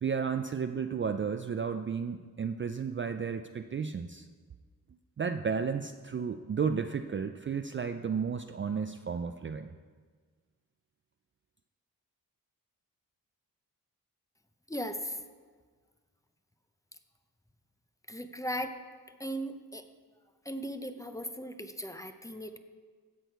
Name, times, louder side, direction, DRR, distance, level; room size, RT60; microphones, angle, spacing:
voice 1, 0.0-4.3 5.2-9.7, right 6 dB, 35° right, 8 dB, 0.4 m, -33 dB
voice 2, 14.7-15.2 18.1-18.8 19.2-19.8 20.5-22.6, equal, 10° left, 8 dB, 0.7 m, -37 dB
16.0 x 6.3 x 4.6 m, 1.5 s
wide cardioid pair, 90°, 37 cm